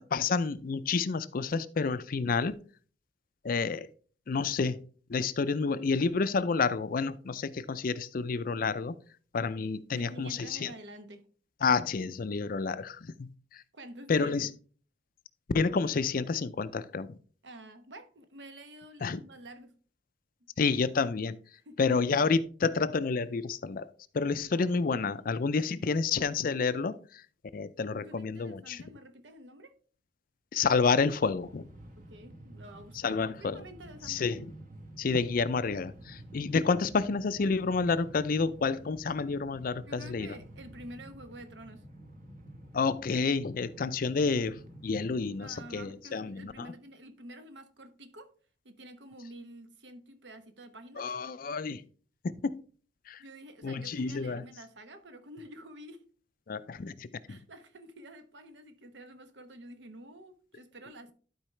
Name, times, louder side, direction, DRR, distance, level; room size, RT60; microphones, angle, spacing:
voice 1, 0.0-2.6 3.4-3.9 4.3-4.8 5.1-8.9 9.3-10.7 11.6-13.6 14.1-14.5 15.5-17.2 19.0-19.2 20.6-21.4 21.8-23.9 24.1-27.2 27.5-28.9 30.5-31.7 33.0-33.6 34.0-34.5 35.0-40.4 42.7-46.7 51.0-51.8 52.2-52.6 53.1-53.2 53.6-54.5 56.5-57.4, left 4 dB, 50° left, 0.4 m, -29 dB
voice 2, 9.6-11.2 13.7-14.5 17.4-19.7 21.6-21.8 25.2-25.3 28.0-29.7 32.0-34.3 39.9-41.8 45.4-48.3 48.6-51.1 53.2-56.0 57.3-61.1, right 1 dB, 70° right, 1.0 m, -49 dB
Train, 30.8-45.8, right 1 dB, 45° right, 1.1 m, -50 dB
12.0 x 4.7 x 3.2 m
head